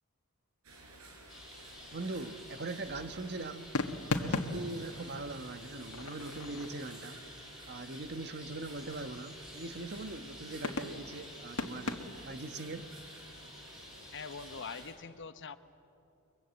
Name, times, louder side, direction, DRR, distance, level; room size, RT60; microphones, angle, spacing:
sound 1, 0.6-14.9, right 2 dB, 75° right, 5.9 m, -53 dB
sound 2, 1.3-14.8, left 1 dB, ahead, 7.4 m, -51 dB
sound 3, 1.6-2.3 3.7-7.0 8.8-9.3 9.7-10.2 10.6-12.3, left 3 dB, 80° left, 1.6 m, -38 dB
voice 1, 1.9-3.7 4.1-7.2 7.7-12.9, right 2 dB, 50° right, 9 dB, 1.2 m, -41 dB
voice 2, 14.1-15.6, left 5 dB, 60° left, 10 dB, 1.0 m, -43 dB
29.5 x 23.5 x 8.3 m, 2.7 s
head